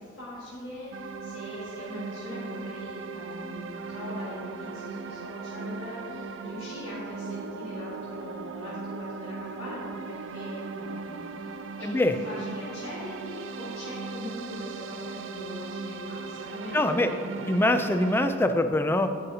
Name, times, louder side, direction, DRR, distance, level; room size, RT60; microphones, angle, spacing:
voice 1, 0.0-17.5, left 1 dB, 85° left, -8 dB, 1.7 m, -41 dB
sound 1, 0.9-18.3, right 4 dB, 65° right, 0.4 m, -38 dB
voice 2, 11.8-12.2 16.7-17.1 17.5-19.1, left 1 dB, 10° left, 8 dB, 0.3 m, -23 dB
16.0 x 5.5 x 2.7 m, 2.7 s
head